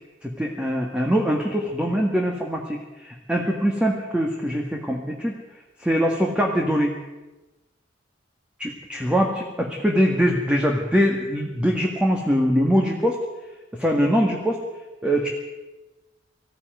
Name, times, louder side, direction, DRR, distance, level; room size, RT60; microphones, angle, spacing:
voice 1, 0.2-5.4 5.8-7.0 8.6-13.2 13.7-14.6 15.0-15.3, equal, 5° right, 1 dB, 1.8 m, -22 dB
20.0 x 14.5 x 9.3 m, 1.1 s
head